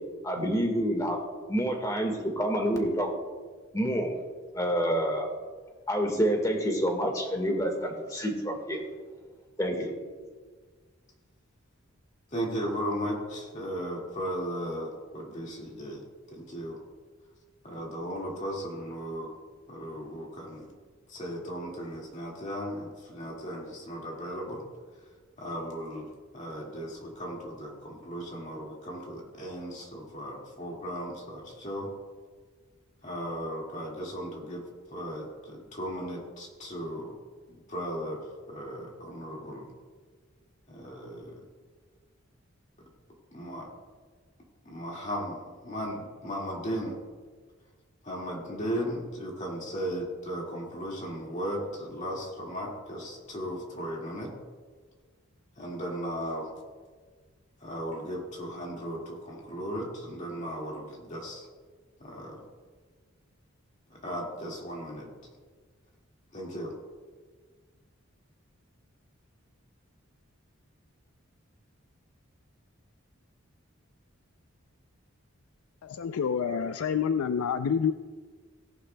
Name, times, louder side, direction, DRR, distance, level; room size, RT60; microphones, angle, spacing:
voice 1, 0.2-1.2 1.5-3.1 3.7-4.1 4.5-5.3 5.9-8.8 9.6-9.9, equal, 15° left, 1.5 m, -28 dB
voice 2, 12.3-16.8 17.6-19.3 19.7-20.7 21.1-24.6 25.4-31.9 33.0-37.2 37.5-39.7 40.7-41.4 43.3-43.7 44.7-47.0 48.0-54.3 55.6-56.5 57.6-61.5 62.0-62.5 63.9-65.1 66.3-66.8, equal, 35° left, 2.0 m, -36 dB
voice 3, 75.8-77.9, left 7 dB, 85° left, 0.4 m, -28 dB
18.0 x 11.0 x 2.2 m
head